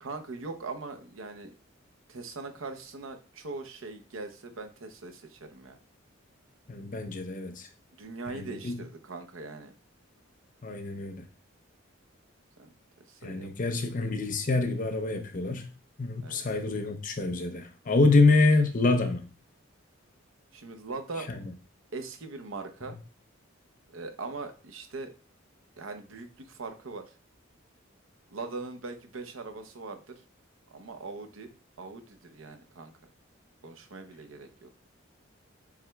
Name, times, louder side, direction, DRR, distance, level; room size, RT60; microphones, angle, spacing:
voice 1, 0.0-1.5 2.1-5.8 7.9-9.7 12.6-12.7 13.1-13.9 16.2-16.4 20.5-21.3 21.9-23.0 23.9-25.1 25.8-27.0 28.3-30.2 30.7-31.5 31.8-32.9 33.6-34.7, right 3 dB, 85° right, 0.8 m, -41 dB
voice 2, 6.7-7.7 8.3-8.8 10.6-11.2 13.2-15.7 16.0-19.2 21.3-21.4, left 3 dB, 40° left, 0.7 m, -26 dB
7.0 x 3.2 x 2.3 m
head